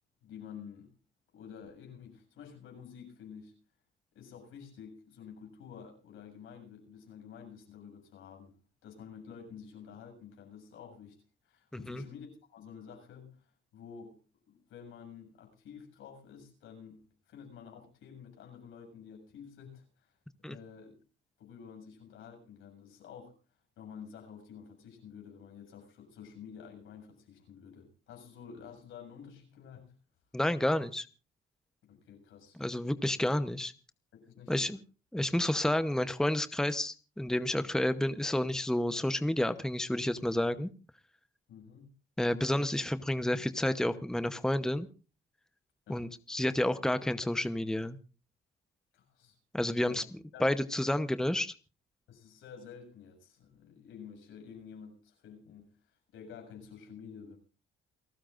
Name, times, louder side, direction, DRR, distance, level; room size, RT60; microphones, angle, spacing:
voice 1, 0.2-0.9 1.3-3.5 4.1-8.5 8.8-11.2 11.4-14.2 14.5-20.1 20.4-20.9 21.4-23.4 23.8-29.9 31.8-32.6 34.1-34.8 41.5-41.9 45.9-46.1 48.9-49.4 49.8-50.0 50.3-50.5 52.1-57.4, left 7 dB, 85° left, 7.3 m, -50 dB
voice 2, 11.7-12.0 20.4-20.5 30.3-31.1 32.6-33.7 34.5-34.8 35.1-40.7 42.2-44.9 45.9-48.0 49.5-50.0 50.4-51.5, left 1 dB, 5° left, 0.9 m, -30 dB
28.5 x 14.0 x 2.6 m
cardioid pair, 90°, 20 cm